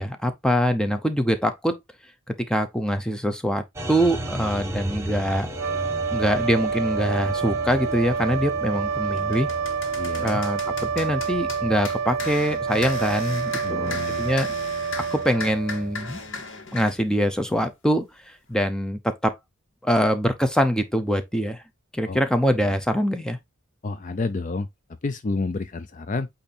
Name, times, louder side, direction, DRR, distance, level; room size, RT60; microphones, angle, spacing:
voice 1, 0.0-1.8 2.5-3.6 3.9-5.5 6.1-9.5 10.2-10.6 10.9-14.5 15.0-16.2 16.7-19.3 19.8-21.6 21.9-23.4, equal, 5° left, 0.8 m, -24 dB
sound 1, 3.8-16.3, right 1 dB, 15° right, 1.1 m, -37 dB
sound 2, 5.5-16.1, right 5 dB, 70° right, 0.5 m, -28 dB
sound 3, 8.1-8.3 8.8-17.0, left 4 dB, 65° left, 1.5 m, -37 dB
voice 2, 10.0-10.4 13.6-14.3 22.1-22.2 23.8-24.7 25.0-26.3, left 3 dB, 35° left, 0.4 m, -29 dB
8.5 x 2.8 x 4.3 m
head